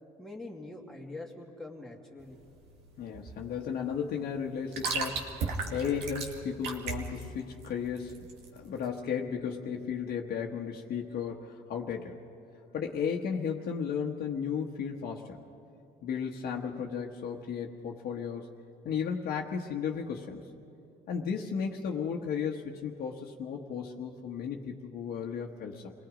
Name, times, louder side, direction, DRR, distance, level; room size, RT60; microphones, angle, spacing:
voice 1, 0.2-2.4, left 2 dB, 5° left, -1 dB, 2.3 m, -44 dB
sound 1, 2.2-8.9, right 4 dB, 85° right, 2.2 m, -37 dB
voice 2, 3.0-8.2 8.5-12.2 12.7-15.4 16.0-18.5 18.8-20.4 21.1-25.9, left 7 dB, 65° left, -1 dB, 1.3 m, -34 dB
28.5 x 19.5 x 5.1 m, 2.6 s
cardioid pair, 110°, 17 cm